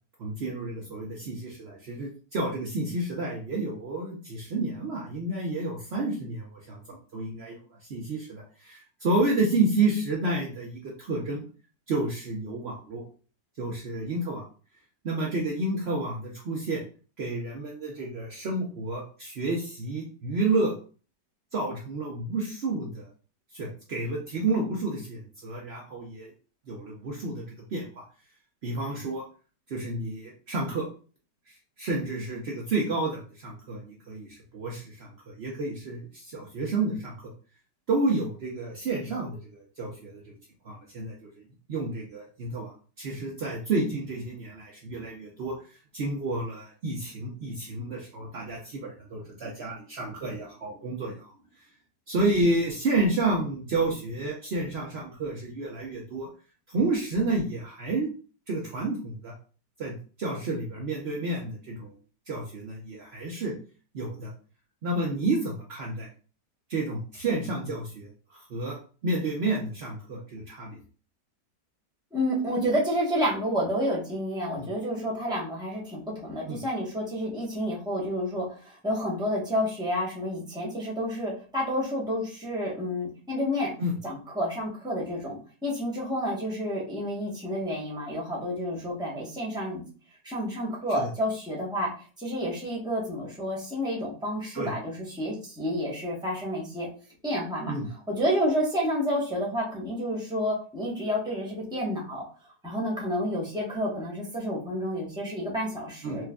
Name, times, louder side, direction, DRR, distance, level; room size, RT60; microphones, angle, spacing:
voice 1, 0.2-7.6 7.9-11.4 11.9-13.0 13.6-14.5 15.0-16.8 17.2-20.7 21.5-23.1 23.5-26.3 26.7-28.0 28.6-29.2 29.7-30.9 31.5-37.1 37.9-40.4 40.6-41.2 41.7-42.7 43.0-51.3 52.1-56.3 56.7-58.1 58.5-59.4 59.8-61.9 62.3-63.5 63.9-64.3 64.8-66.1 66.7-68.8 69.0-70.8 74.6-74.7 76.5-76.6 83.8-83.9 90.9-91.1 94.5-94.7 97.7-97.9 106.0-106.2, right 2 dB, 85° right, -2 dB, 0.5 m, -30 dB
voice 2, 72.1-83.7 84.0-89.8 90.2-91.9 92.2-96.9 97.2-97.7 98.1-102.2 102.6-106.3, equal, 5° right, -4 dB, 0.7 m, -30 dB
4.4 x 2.4 x 2.2 m, 0.38 s
omnidirectional pair, 1.9 m